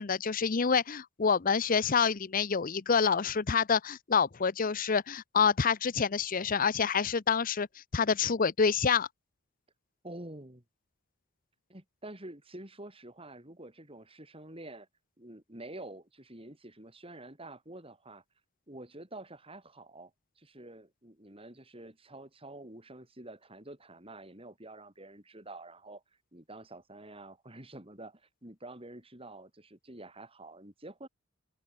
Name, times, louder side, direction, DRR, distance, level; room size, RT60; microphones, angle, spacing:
voice 1, 0.0-9.1, left 6 dB, 40° left, 0.7 m, -27 dB
voice 2, 10.0-10.6 11.7-14.9 15.2-18.2 18.7-20.1 20.4-26.0 26.3-31.1, right 2 dB, 25° right, 4.6 m, -48 dB
open air
head